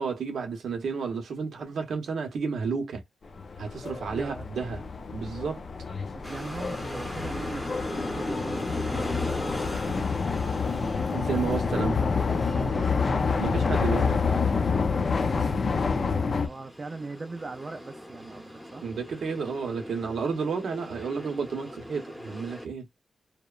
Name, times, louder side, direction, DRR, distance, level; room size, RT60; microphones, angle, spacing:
voice 1, 0.0-3.0 3.6-4.8 5.1-5.6 11.1-12.1 13.4-14.5 18.8-22.9, right 5 dB, 80° right, 0.7 m, -31 dB
sound 1, 3.2-16.5, left 5 dB, 45° left, 0.4 m, -28 dB
voice 2, 4.1-4.4 6.1-11.0 12.4-13.4 15.8-18.9, right 3 dB, 30° right, 0.4 m, -40 dB
sound 2, 6.2-22.7, equal, 5° left, 0.8 m, -40 dB
2.8 x 2.0 x 2.3 m
wide cardioid pair, 140°, 0 cm